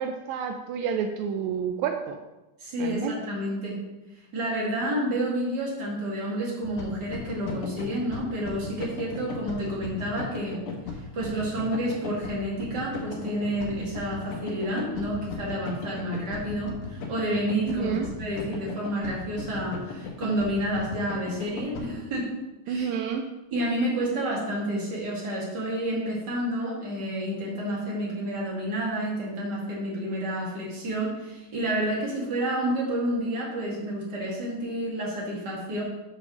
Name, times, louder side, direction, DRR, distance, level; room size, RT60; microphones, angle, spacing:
voice 1, 0.0-2.2 2.8-3.2 17.7-18.1 22.7-23.3, right 7 dB, 80° right, 4 dB, 1.9 m, -29 dB
voice 2, 2.6-3.8 4.3-10.6 10.9-22.3 22.7-22.9 23.5-35.8, right 1 dB, 35° right, -5 dB, 2.7 m, -30 dB
sound 1, 6.6-21.8, left 5 dB, 90° left, 2.6 m, -36 dB
6.8 x 5.1 x 6.3 m, 1.0 s
omnidirectional pair, 3.4 m